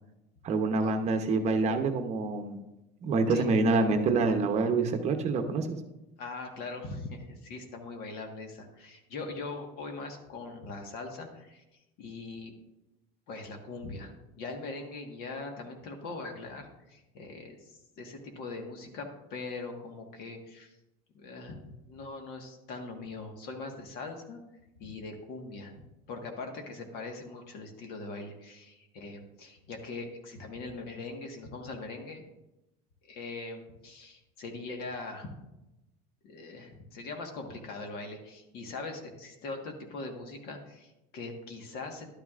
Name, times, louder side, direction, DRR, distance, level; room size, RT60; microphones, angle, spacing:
voice 1, 0.4-2.6 3.0-5.8, right 3 dB, 35° right, 6 dB, 0.8 m, -26 dB
voice 2, 6.2-11.6 12.0-12.5 13.3-20.7 21.1-24.4 24.8-25.7 26.1-32.2 33.0-35.3 36.2-42.1, left 3 dB, 55° left, 3 dB, 1.5 m, -41 dB
12.0 x 9.3 x 2.5 m, 0.95 s
cardioid pair, 140°, 19 cm